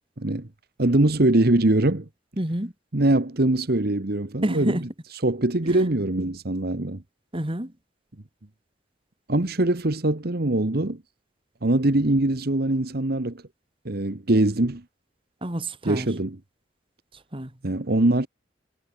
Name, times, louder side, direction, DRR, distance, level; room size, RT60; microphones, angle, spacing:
voice 1, 0.2-0.5 0.8-2.1 2.9-4.9 5.2-7.0 9.3-11.0 11.6-13.4 13.8-14.8 15.8-16.4 17.6-18.3, right 1 dB, 55° right, 1.3 m, -22 dB
voice 2, 2.4-2.7 4.4-4.8 5.6-5.7 7.3-7.7 15.4-16.1 17.3-17.5, right 1 dB, 30° right, 2.6 m, -28 dB
head